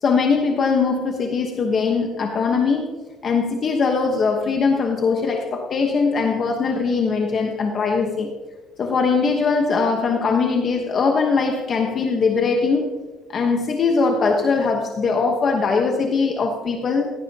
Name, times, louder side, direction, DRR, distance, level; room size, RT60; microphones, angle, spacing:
voice 1, 0.0-3.0 3.2-8.3 8.8-12.9 13.3-17.1, left 4 dB, 30° left, 2 dB, 1.1 m, -21 dB
17.0 x 15.5 x 2.8 m, 1.3 s
cardioid pair, 175°, 0 cm